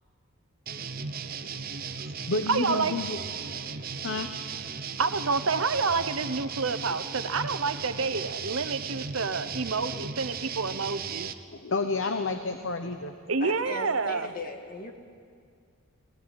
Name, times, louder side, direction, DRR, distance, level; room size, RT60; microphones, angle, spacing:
sound 1, 0.7-11.3, right 6 dB, 45° right, 0.9 m, -36 dB
voice 1, 2.0-4.3 11.5-13.1, left 3 dB, 60° left, 7 dB, 1.0 m, -31 dB
voice 2, 2.5-2.9 5.0-11.3 13.3-14.3, right 4 dB, 70° right, 11 dB, 0.9 m, -28 dB
voice 3, 13.4-14.9, left 2 dB, 40° left, 4 dB, 1.9 m, -38 dB
21.5 x 17.5 x 9.8 m, 2.2 s
head